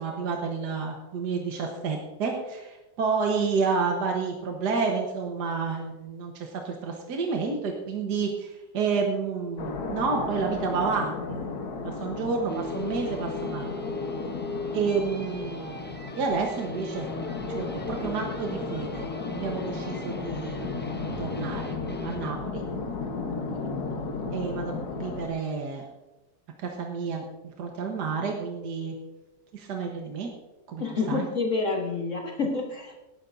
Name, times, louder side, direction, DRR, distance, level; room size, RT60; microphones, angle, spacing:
voice 1, 0.0-11.4 11.8-13.8 14.7-15.8 16.2-17.1 17.5-20.6 21.2-21.8 22.0-22.6 24.3-25.9 26.6-27.2 27.6-29.0 29.5-30.3 30.7-31.3, right 5 dB, 70° right, 1 dB, 1.8 m, -30 dB
sound 1, 9.6-25.3, left 4 dB, 65° left, 1.7 m, -34 dB
sound 2, 12.5-22.3, left 2 dB, 15° left, 0.3 m, -38 dB
voice 2, 30.8-33.0, left 3 dB, 45° left, 1 dB, 1.6 m, -28 dB
18.0 x 10.5 x 2.7 m, 1.1 s
omnidirectional pair, 1.9 m